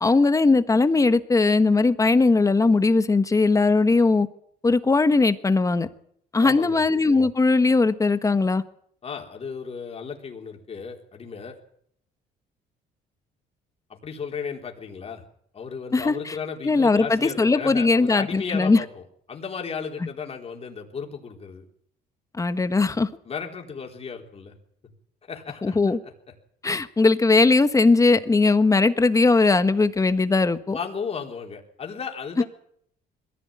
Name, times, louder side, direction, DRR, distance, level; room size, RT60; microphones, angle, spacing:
voice 1, 0.0-4.3 4.6-5.9 6.3-8.6 15.9-16.4 16.6-18.8 22.3-23.1 25.6-26.0 26.6-30.8 32.4-32.5, left 3 dB, 20° left, 11 dB, 1.3 m, -19 dB
voice 2, 6.4-6.8 9.0-11.6 13.9-15.2 15.5-21.6 23.2-24.5 25.3-26.0 30.7-32.4, left 6 dB, 35° left, 1 dB, 4.1 m, -34 dB
21.5 x 15.0 x 9.0 m, 0.68 s
cardioid pair, 110°, 17 cm